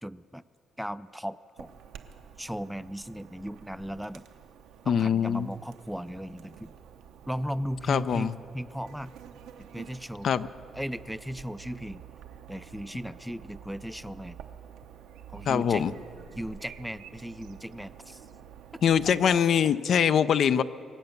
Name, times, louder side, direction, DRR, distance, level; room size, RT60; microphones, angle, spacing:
voice 1, 0.0-0.4 0.8-1.7 2.4-4.2 4.8-6.7 7.3-9.1 9.7-10.3 10.7-12.0 12.5-14.4 15.3-15.8 16.4-18.2 19.2-19.4, equal, ahead, 15 dB, 0.3 m, -36 dB
Chirp tweet / Buzz, 1.6-19.4, right 8 dB, 90° right, 0.8 m, -49 dB
voice 2, 4.9-5.5 7.9-8.3 10.2-10.5 15.5-15.9 18.8-20.6, left 8 dB, 60° left, 14 dB, 0.4 m, -23 dB
24.0 x 8.0 x 6.8 m, 2.5 s
cardioid pair, 90°, 0 cm